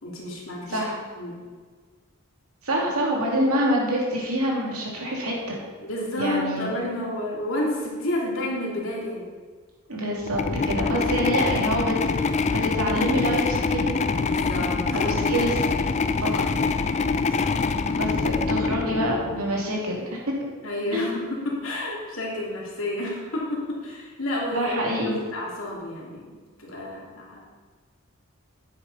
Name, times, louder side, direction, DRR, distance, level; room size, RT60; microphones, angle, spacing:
voice 1, 0.0-1.4 5.8-9.3 10.8-11.1 11.4-11.5 14.2-15.2 17.3-17.6 20.6-26.2 26.6-27.5, left 1 dB, 65° left, -3 dB, 2.7 m, -31 dB
voice 2, 2.6-5.6 6.2-6.7 9.9-14.0 14.9-15.5 16.2-16.4 17.8-20.4 20.9-21.0 24.5-25.2, equal, 90° right, -3 dB, 2.6 m, -26 dB
sound 1, 10.2-19.6, left 4 dB, 30° left, 0.3 m, -25 dB
9.9 x 8.2 x 4.1 m, 1.5 s
head